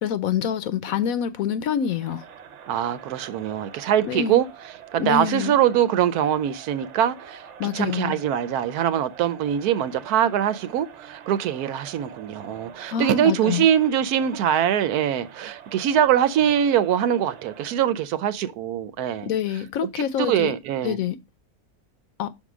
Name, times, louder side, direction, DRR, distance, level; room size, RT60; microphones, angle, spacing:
voice 1, 0.0-2.2 4.1-4.4 5.0-5.5 7.6-8.2 12.9-13.7 19.2-20.5 20.8-21.2 22.2-22.3, left 8 dB, 70° left, 1.1 m, -26 dB
Crowd, 1.8-18.0, right 8 dB, 60° right, 1.0 m, -45 dB
voice 2, 2.7-4.5 4.9-19.3 20.0-21.0, right 10 dB, 85° right, 1.2 m, -23 dB
6.0 x 3.7 x 6.1 m
omnidirectional pair, 1.6 m